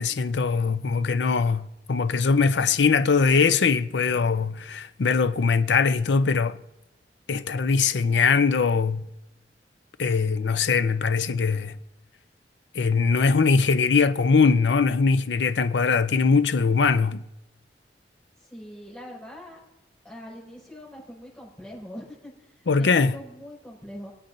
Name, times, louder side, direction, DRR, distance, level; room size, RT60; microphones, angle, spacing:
voice 1, 0.0-6.6 7.3-9.1 10.0-11.8 12.7-17.2 22.7-23.1, left 5 dB, 75° left, 0.5 m, -21 dB
voice 2, 18.4-19.6 20.0-24.1, equal, 5° left, 5.4 m, -42 dB
24.5 x 8.7 x 2.6 m
head